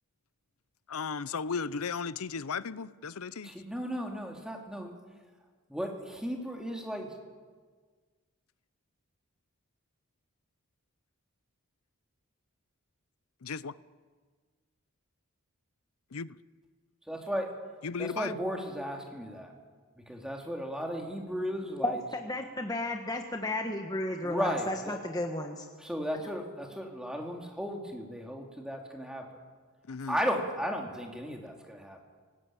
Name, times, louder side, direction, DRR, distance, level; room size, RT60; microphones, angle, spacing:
voice 1, 0.9-3.5 13.4-13.8 16.1-16.4 17.8-18.4 29.9-30.2, left 5 dB, 80° left, 0.7 m, -35 dB
voice 2, 3.4-5.0 5.7-7.1 17.1-17.6 18.0-19.5 20.0-22.0 24.2-25.0 25.8-29.4 30.1-32.0, equal, 5° right, 2.9 m, -35 dB
voice 3, 21.8-25.7, left 1 dB, 15° left, 1.3 m, -33 dB
25.5 x 19.0 x 8.8 m
head